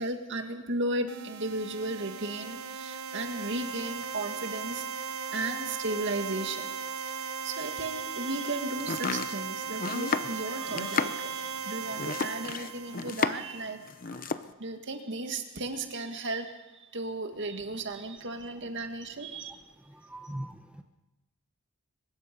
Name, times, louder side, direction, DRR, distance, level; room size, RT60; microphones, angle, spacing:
voice 1, 0.0-6.7 7.0-7.1 7.4-13.8 14.1-19.6 20.2-20.3, right 2 dB, 55° right, 5 dB, 2.0 m, -35 dB
sound 1, 1.1-13.8, right 6 dB, 75° right, 0.8 m, -37 dB
Domestic sounds home sounds, 8.8-13.6 13.9-14.5, left 4 dB, 40° left, 0.8 m, -32 dB
voice 2, 19.8-20.8, right 1 dB, 5° right, 5 dB, 1.0 m, -41 dB
23.5 x 20.5 x 5.3 m, 1.1 s
head